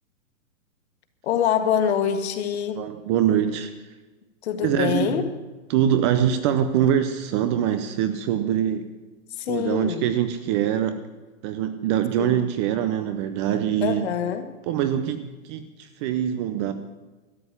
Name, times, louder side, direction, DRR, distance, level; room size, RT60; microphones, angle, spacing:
voice 1, 1.2-2.8 4.4-5.3 9.4-10.0 12.2-12.4 13.8-14.5, left 8 dB, 50° left, 7 dB, 1.8 m, -25 dB
voice 2, 2.8-3.7 4.6-5.2 5.7-8.9 9.5-11.0 11.4-14.1 14.7-16.7, right 10 dB, 20° right, 10 dB, 0.5 m, -24 dB
13.0 x 7.9 x 9.7 m, 1.2 s
hypercardioid pair, 135°, 41 cm